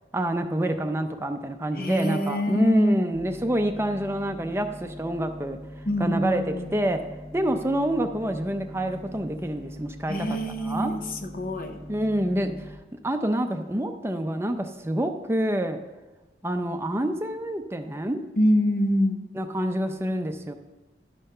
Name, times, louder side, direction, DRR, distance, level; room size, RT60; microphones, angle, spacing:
voice 1, 0.1-5.6 6.0-6.4 6.7-7.0 7.3-10.1 10.6-10.9 11.9-12.8 13.0-15.8 16.4-18.2 19.4-20.5, right 1 dB, 15° right, 7 dB, 0.5 m, -27 dB
voice 2, 1.7-3.0 5.9-6.8 10.1-11.8 18.3-19.3, left 1 dB, 50° left, 5 dB, 0.8 m, -25 dB
sound 1, 3.1-12.7, left 1 dB, 35° left, 1.1 m, -42 dB
11.5 x 5.6 x 5.5 m, 1.1 s
head